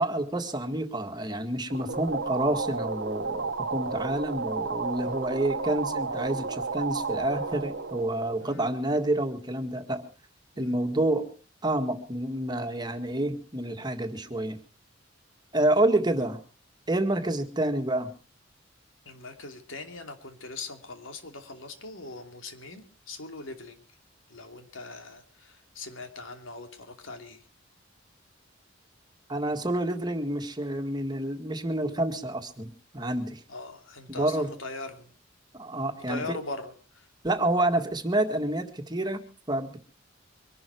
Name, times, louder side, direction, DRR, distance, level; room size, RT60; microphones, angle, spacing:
voice 1, 0.0-10.0 10.6-11.3 11.6-14.6 15.5-16.4 16.9-18.1 29.3-33.4 34.1-34.5 35.5-36.4 37.2-39.9, right 1 dB, 20° right, 6 dB, 1.9 m, -28 dB
sound 1, 1.7-9.1, right 4 dB, 60° right, 1.2 m, -32 dB
voice 2, 8.4-8.7 10.5-10.8 19.1-23.8 24.3-27.4 33.5-35.1 35.9-37.0, left 3 dB, 90° left, 6 dB, 2.8 m, -41 dB
24.0 x 12.0 x 4.6 m, 0.38 s
head